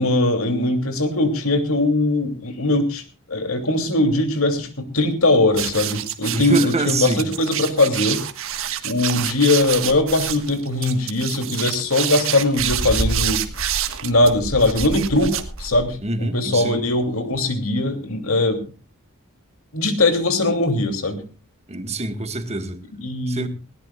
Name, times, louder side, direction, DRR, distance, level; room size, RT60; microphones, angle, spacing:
voice 1, 0.0-3.0 3.3-8.2 8.8-13.5 14.0-18.7 19.7-21.2 23.0-23.5, left 2 dB, 75° left, 3.0 m, -20 dB
sound 1, 5.5-16.0, right 7 dB, 65° right, 1.6 m, -27 dB
voice 2, 6.3-7.3 16.0-16.9 21.7-22.8 23.3-23.5, right 2 dB, 30° right, 1.8 m, -26 dB
19.5 x 17.5 x 2.4 m
head